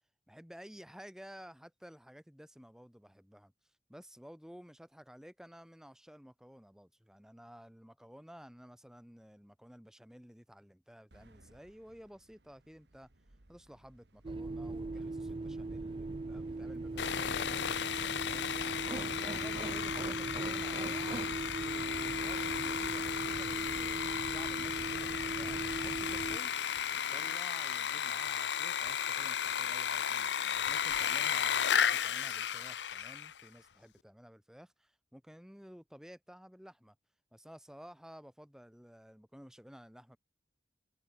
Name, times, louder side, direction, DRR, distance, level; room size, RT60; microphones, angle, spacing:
voice 1, 0.3-13.1 13.5-26.5 26.9-37.0 37.3-40.2, equal, 5° right, 1.2 m, -54 dB
sound 1, 11.1-26.6, right 1 dB, 75° right, 2.2 m, -61 dB
Plane takeoff, 14.2-26.4, right 3 dB, 30° right, 0.3 m, -39 dB
Sawing, 17.0-33.4, left 8 dB, 85° left, 0.7 m, -34 dB
head